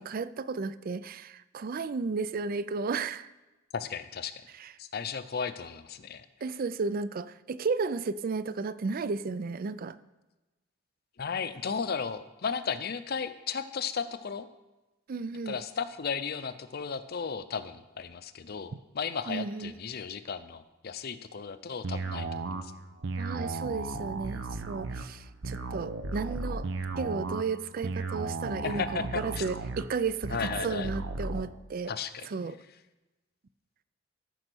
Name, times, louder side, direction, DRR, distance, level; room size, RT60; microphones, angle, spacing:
voice 1, 0.1-3.3 4.6-4.7 6.4-10.0 15.1-15.6 19.3-19.7 23.2-26.7 27.0-31.9 32.3-32.6, right 4 dB, 45° right, 15 dB, 0.4 m, -33 dB
voice 2, 3.7-4.4 4.8-6.3 11.2-14.5 15.5-22.7 28.6-29.4 30.3-30.9 31.9-32.3, left 6 dB, 50° left, 12 dB, 0.6 m, -35 dB
sound 1, 21.8-31.4, right 3 dB, 70° right, 0.9 m, -35 dB
14.0 x 5.4 x 6.2 m, 1.1 s
head